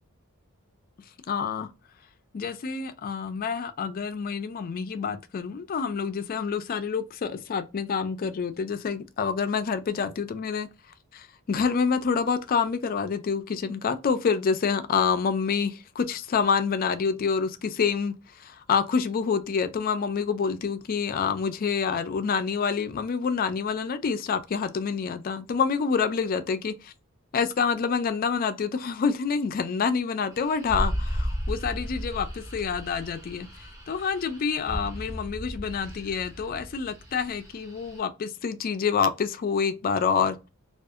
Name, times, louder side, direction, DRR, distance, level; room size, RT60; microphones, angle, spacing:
voice 1, 1.3-1.7 2.3-10.7 11.1-26.7 27.3-33.5 33.9-40.5, left 6 dB, 40° left, 0.3 m, -27 dB
sound 1, 30.3-38.0, equal, 15° right, 0.6 m, -35 dB
2.6 x 2.3 x 2.4 m
head